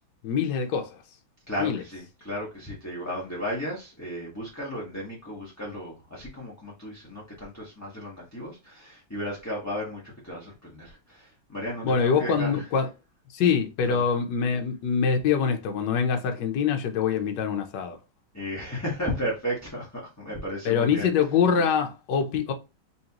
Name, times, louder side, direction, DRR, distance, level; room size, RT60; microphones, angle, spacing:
voice 1, 0.2-1.0 1.6-1.8 11.8-12.9 13.3-18.0 20.6-22.5, left 6 dB, 65° left, 1.3 m, -24 dB
voice 2, 1.5-12.6 13.8-14.0 18.3-21.1, equal, 10° left, 1.0 m, -34 dB
4.2 x 3.2 x 2.9 m
omnidirectional pair, 2.2 m